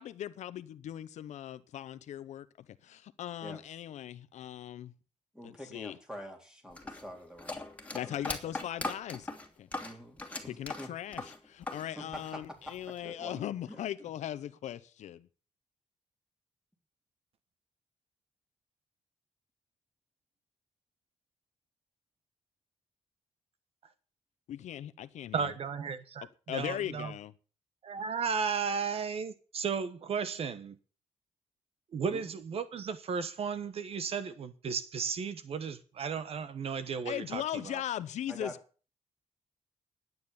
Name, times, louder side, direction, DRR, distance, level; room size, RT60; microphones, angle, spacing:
voice 1, 0.0-4.9 5.4-6.0 7.9-9.3 9.6-9.7 10.4-15.3 24.5-25.5 26.5-27.3 37.1-38.5, left 11 dB, 80° left, 0.8 m, -39 dB
voice 2, 5.3-7.7 8.0-8.2 9.8-10.9 12.0-13.9 32.1-32.4 38.3-38.6, equal, 5° right, 3.7 m, -46 dB
sound 1, 6.8-11.9 12.1-13.0, left 2 dB, 10° left, 2.8 m, -39 dB
voice 3, 25.3-27.1 27.8-30.8 31.9-37.8, right 6 dB, 55° right, 1.2 m, -34 dB
12.0 x 9.5 x 7.1 m
cardioid pair, 115°, 12 cm